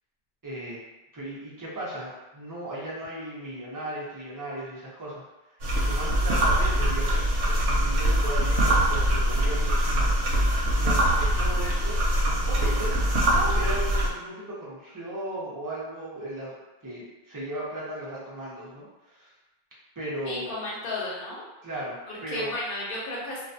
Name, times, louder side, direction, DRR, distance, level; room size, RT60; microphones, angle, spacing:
voice 1, 0.4-0.8 1.1-5.2 5.8-10.1 10.7-12.0 12.5-19.3 20.0-20.6 21.6-22.5, right 1 dB, 30° right, -7 dB, 0.4 m, -36 dB
sound 1, 5.6-14.1, right 1 dB, 70° right, 0.8 m, -23 dB
voice 2, 20.2-21.4 22.3-23.5, left 2 dB, 50° left, -6 dB, 0.9 m, -33 dB
2.3 x 2.1 x 2.5 m, 1.0 s
omnidirectional pair, 1.2 m